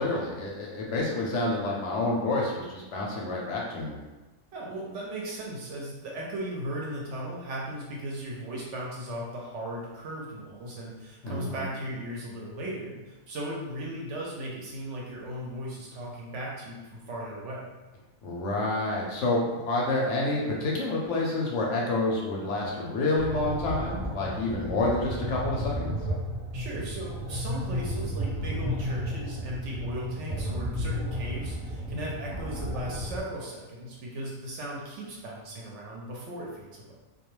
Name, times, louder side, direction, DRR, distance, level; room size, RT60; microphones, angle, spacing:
voice 1, 0.0-4.0 11.2-11.6 18.2-19.4 19.7-25.9, left 2 dB, 70° left, -3 dB, 0.8 m, -28 dB
voice 2, 4.5-17.7 26.5-36.9, right 1 dB, 65° right, -3 dB, 0.8 m, -37 dB
sound 1, 23.2-33.2, equal, 15° right, 0.5 m, -33 dB
2.3 x 2.2 x 3.0 m, 1.1 s
omnidirectional pair, 1.4 m